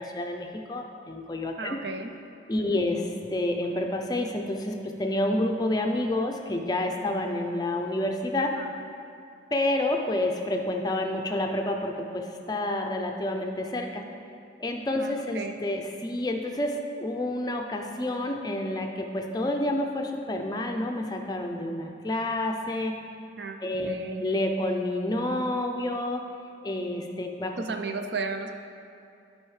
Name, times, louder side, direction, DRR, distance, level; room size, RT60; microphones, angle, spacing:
voice 1, 0.0-1.8 2.5-3.0 3.3-8.5 9.5-14.1 14.6-23.0 23.6-26.2 26.6-27.5, left 1 dB, 20° left, 3 dB, 0.4 m, -29 dB
voice 2, 1.6-2.1 2.6-2.8 8.6-8.7 15.0-15.5 23.4-24.2 27.6-28.5, right 3 dB, 60° right, 6 dB, 0.5 m, -34 dB
11.0 x 5.4 x 3.2 m, 2.5 s
head